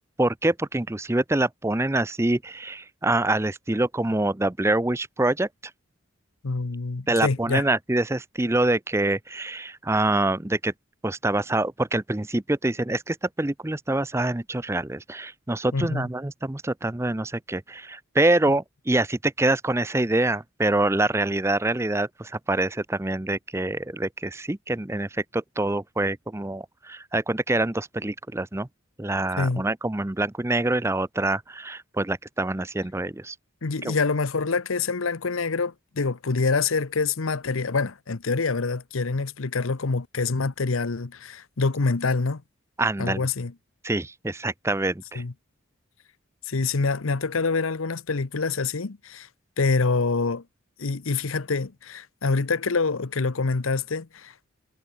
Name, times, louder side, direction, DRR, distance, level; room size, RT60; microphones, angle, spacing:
voice 1, 0.2-5.5 7.1-10.7 11.0-28.7 29.0-33.3 33.8-34.0 42.8-43.3 43.8-45.2, right 2 dB, 15° right, 0.5 m, -25 dB
voice 2, 6.4-7.7 15.7-16.1 29.3-29.6 33.6-42.4 43.0-43.5 45.1-45.3 46.5-49.3 49.6-50.4 50.8-54.3, left 4 dB, 80° left, 0.9 m, -26 dB
head